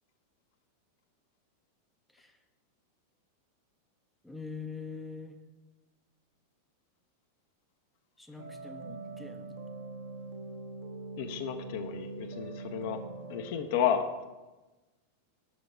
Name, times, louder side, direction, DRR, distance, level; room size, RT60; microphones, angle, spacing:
voice 1, 4.2-5.4 8.2-9.6, left 4 dB, 5° left, 5 dB, 0.5 m, -44 dB
sound 1, 8.4-13.5, right 3 dB, 50° right, 0.9 m, -43 dB
voice 2, 11.2-13.0 13.3-14.0, left 8 dB, 50° left, 7 dB, 0.6 m, -31 dB
6.5 x 6.1 x 3.8 m, 1.2 s
figure-of-eight pair, 90°, 0 cm